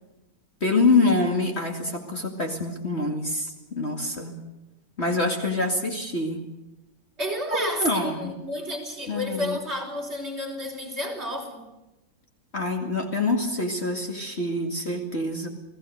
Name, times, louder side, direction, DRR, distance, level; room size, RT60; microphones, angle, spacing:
voice 1, 0.6-4.3 5.0-6.5 7.5-8.4 9.1-9.6 12.5-15.5, left 2 dB, 35° left, 3 dB, 2.6 m, -25 dB
voice 2, 7.2-11.6, equal, 35° right, 1 dB, 5.3 m, -31 dB
29.5 x 18.5 x 6.6 m, 0.98 s
omnidirectional pair, 1.9 m